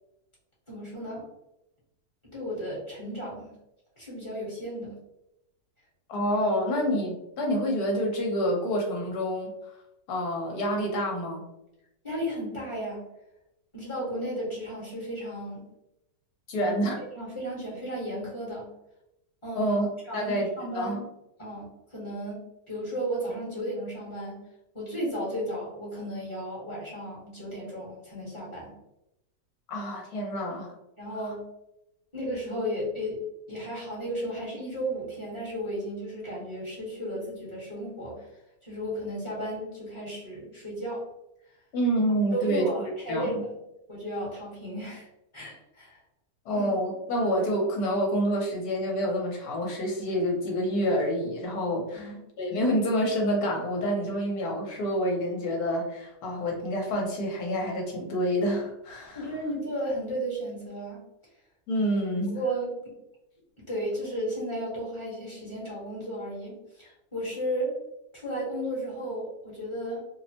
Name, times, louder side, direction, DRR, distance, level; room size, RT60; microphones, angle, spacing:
voice 1, 0.7-1.2 2.3-3.5 4.0-4.9 6.7-6.8 12.0-13.0 13.7-15.6 16.6-16.7 17.1-18.7 19.4-19.7 20.1-21.1 21.4-21.6 21.9-22.4 22.7-24.4 24.7-28.7 31.0-31.4 32.1-38.2 38.6-41.1 42.3-43.5 43.9-45.1 45.3-46.0 46.5-46.7 51.9-52.2 59.1-61.0 62.3-62.7 63.7-67.8 68.1-70.0, right 1 dB, 20° left, -6 dB, 0.9 m, -34 dB
voice 2, 6.1-9.5 10.1-11.4 16.5-17.0 19.5-19.9 20.1-20.5 20.7-21.0 29.7-30.7 31.2-31.3 41.7-43.4 46.5-59.3 61.7-62.4, equal, 70° left, 0 dB, 1.1 m, -28 dB
2.9 x 2.0 x 2.7 m, 0.87 s
omnidirectional pair, 1.8 m